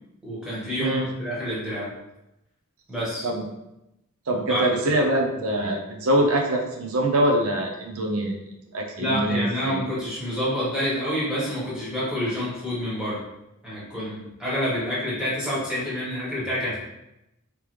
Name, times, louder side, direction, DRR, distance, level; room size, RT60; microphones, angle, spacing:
voice 1, 0.2-1.9 2.9-3.3 4.3-4.7 9.0-13.2 13.6-16.8, equal, 5° right, -9 dB, 1.4 m, -28 dB
voice 2, 4.3-8.4 8.7-9.8, right 1 dB, 75° right, 1 dB, 0.7 m, -24 dB
3.3 x 3.3 x 3.2 m, 0.89 s
head